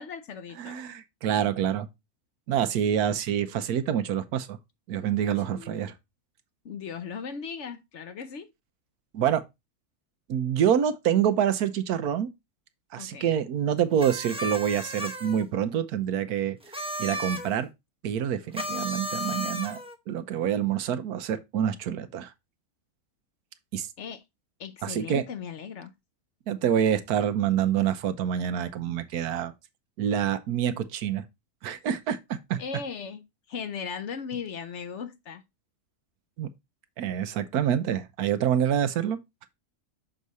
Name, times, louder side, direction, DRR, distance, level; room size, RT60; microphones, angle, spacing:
voice 1, 0.0-0.8 5.5-5.9 6.6-8.5 13.0-13.4 24.0-24.2 24.6-25.9 32.6-33.2 33.5-35.4, left 6 dB, 60° left, 0.9 m, -37 dB
voice 2, 0.6-1.9 2.5-4.6 4.9-5.9 9.1-9.4 10.3-12.3 12.9-16.6 17.0-17.7 18.0-19.8 20.1-22.3 23.7-23.9 24.8-25.2 26.5-29.5 30.0-31.2 31.6-32.6 36.4-36.5 37.0-39.5, right 9 dB, 85° right, 1.3 m, -26 dB
sound 1, 14.0-15.4 16.6-17.5 18.5-19.9, equal, 5° right, 0.6 m, -34 dB
6.6 x 4.8 x 4.0 m
omnidirectional pair, 1.6 m